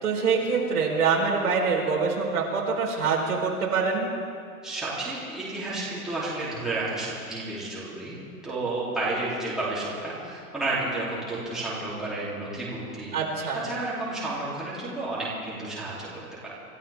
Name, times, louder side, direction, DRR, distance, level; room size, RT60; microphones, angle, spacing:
voice 1, 0.0-4.1 13.1-13.6, right 5 dB, 85° right, -2 dB, 4.4 m, -25 dB
voice 2, 4.6-8.2 8.4-13.1 13.5-16.5, right 2 dB, ahead, -10 dB, 2.8 m, -31 dB
26.5 x 13.0 x 3.5 m, 2.3 s
hypercardioid pair, 165°, 44 cm